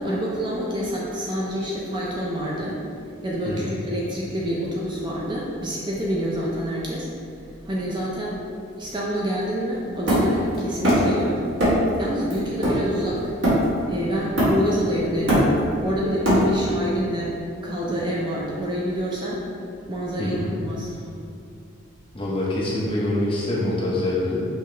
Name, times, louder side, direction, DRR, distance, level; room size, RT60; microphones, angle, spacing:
voice 1, 0.0-2.8 3.2-7.1 7.6-8.4 8.8-11.4 12.0-13.3 13.9-15.5 15.8-17.4 17.6-19.4 19.9-21.0, equal, 20° right, -5 dB, 0.5 m, -27 dB
voice 2, 3.4-3.8 20.2-20.5 22.1-24.4, left 1 dB, 25° left, -6 dB, 0.8 m, -25 dB
Hammer, 10.1-11.2 11.6-11.9 12.3-13.9 14.4-14.8 15.1-16.8, equal, 65° right, 1.4 m, -21 dB
5.5 x 2.9 x 3.2 m, 2.4 s
head